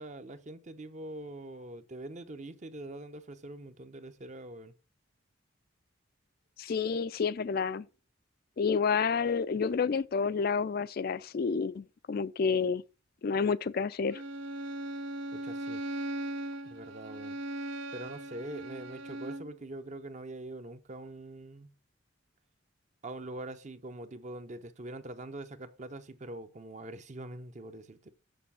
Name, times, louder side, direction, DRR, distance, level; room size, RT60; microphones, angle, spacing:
voice 1, 0.0-4.7 15.3-15.8 16.6-17.4 17.9-21.7 23.0-28.1, right 2 dB, 35° right, 0.7 m, -43 dB
voice 2, 6.6-7.9 8.6-12.8 13.2-14.2, left 5 dB, 50° left, 0.4 m, -29 dB
Bowed string instrument, 14.1-19.5, right 1 dB, 75° right, 0.7 m, -38 dB
6.8 x 6.3 x 5.5 m
head